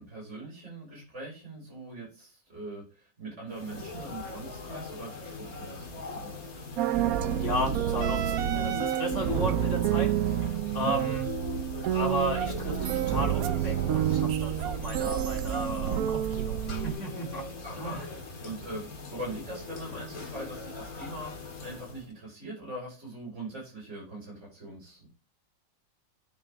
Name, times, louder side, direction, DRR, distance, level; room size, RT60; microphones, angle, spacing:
voice 1, 0.0-6.3 10.8-11.1 17.6-25.1, right 2 dB, 45° right, -3 dB, 5.0 m, -42 dB
sound 1, 3.5-22.1, left 4 dB, 65° left, 2.2 m, -41 dB
sound 2, 6.8-16.9, right 10 dB, 70° right, 1.0 m, -28 dB
voice 2, 7.3-10.1 10.4-11.3 11.9-17.4 17.8-18.1, left 1 dB, 50° left, 0 dB, 2.8 m, -34 dB
9.3 x 5.9 x 3.5 m, 0.33 s
omnidirectional pair, 1.7 m